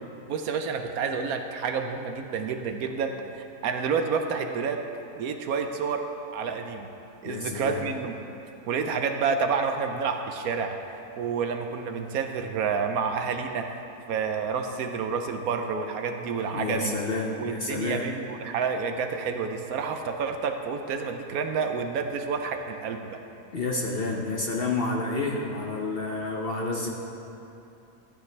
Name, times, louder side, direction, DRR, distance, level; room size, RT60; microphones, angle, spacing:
voice 1, 0.3-4.8 5.2-6.0 6.3-6.9 7.2-8.1 8.7-13.8 14.1-17.0 17.4-23.2, right 5 dB, 70° right, 6 dB, 1.0 m, -29 dB
voice 2, 7.2-7.8 16.5-18.0 23.5-26.9, left 3 dB, 50° left, 0 dB, 0.8 m, -29 dB
14.0 x 9.2 x 3.3 m, 2.8 s
omnidirectional pair, 1.7 m